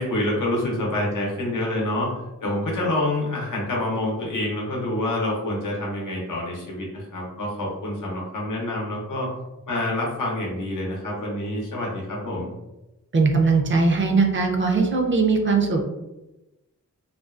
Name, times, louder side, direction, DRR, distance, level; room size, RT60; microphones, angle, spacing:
voice 1, 0.0-2.1 2.4-9.3 9.7-12.5, left 1 dB, 85° left, -2 dB, 0.7 m, -27 dB
voice 2, 13.1-15.8, right 4 dB, 40° right, 2 dB, 0.4 m, -20 dB
2.5 x 2.3 x 2.3 m, 0.98 s
wide cardioid pair, 80°, 31 cm